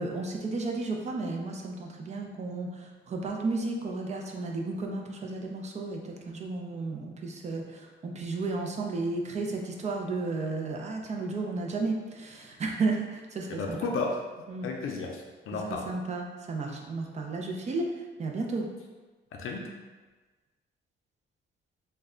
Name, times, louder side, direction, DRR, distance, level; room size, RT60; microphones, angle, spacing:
voice 1, 0.0-13.8 14.5-14.7 15.9-18.7, right 3 dB, 35° right, 1 dB, 0.4 m, -33 dB
voice 2, 13.5-14.2 14.6-15.9 19.3-19.7, left 3 dB, 85° left, 0 dB, 0.5 m, -33 dB
3.1 x 2.2 x 3.6 m, 1.3 s
wide cardioid pair, 165°, 21 cm